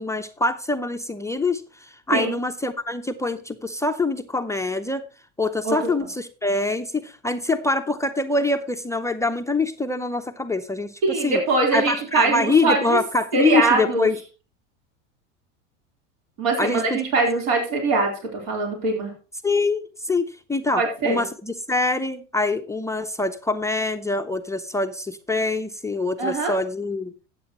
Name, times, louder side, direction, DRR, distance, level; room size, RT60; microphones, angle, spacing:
voice 1, 0.0-5.0 5.4-11.4 11.7-14.2 16.6-17.0 19.4-27.1, left 3 dB, 10° left, 5 dB, 0.5 m, -25 dB
voice 2, 11.0-13.0 13.3-14.1 16.4-19.1 20.7-21.2 26.2-26.5, right 3 dB, 65° right, 1 dB, 3.6 m, -22 dB
13.0 x 8.9 x 2.9 m, 0.33 s
hypercardioid pair, 105°, 37 cm